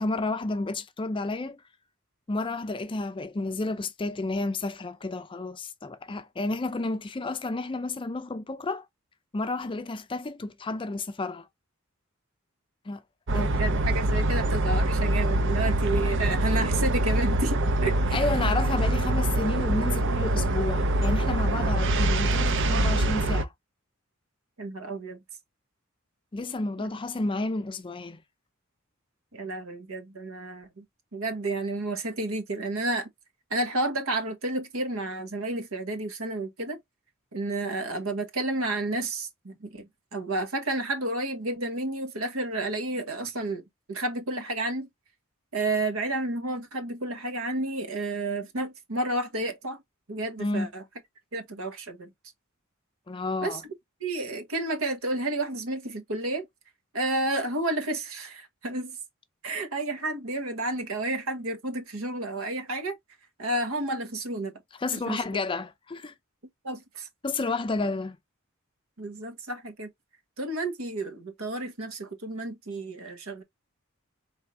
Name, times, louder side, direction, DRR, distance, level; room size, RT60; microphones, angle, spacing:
voice 1, 0.0-1.6 2.3-8.9 9.3-11.5 12.8-13.0 13.3-13.5 18.1-23.5 26.3-28.2 50.4-50.7 53.1-53.6 64.8-66.1 67.2-68.2, left 3 dB, 25° left, 0.4 m, -31 dB
sound 1, 13.3-23.4, right 1 dB, 60° right, 0.6 m, -24 dB
voice 2, 13.3-18.2 24.6-25.2 26.8-26.9 29.3-30.8 31.1-33.1 33.5-36.8 37.3-43.6 43.9-44.9 45.5-49.8 50.1-50.8 51.3-52.1 53.4-53.6 54.0-56.5 56.9-59.0 59.4-63.0 63.4-64.5 65.1-65.2 66.6-67.1 69.0-69.9 70.4-73.4, right 2 dB, 75° right, 1.3 m, -31 dB
4.6 x 3.4 x 2.6 m
head